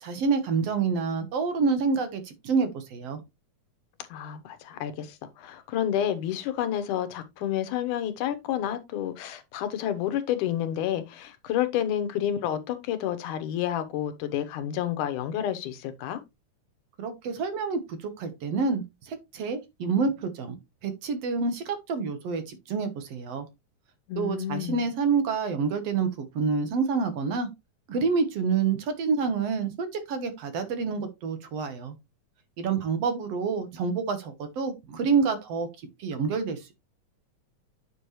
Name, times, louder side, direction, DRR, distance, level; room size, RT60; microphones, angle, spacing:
voice 1, 0.0-3.2 17.0-20.6 20.8-23.5 24.2-27.5 27.9-31.9 32.6-35.7 36.0-36.7, right 5 dB, 60° right, 2.1 m, -28 dB
voice 2, 4.1-16.2 24.1-24.8, left 10 dB, 90° left, 2.5 m, -30 dB
9.8 x 5.4 x 3.1 m
omnidirectional pair, 3.5 m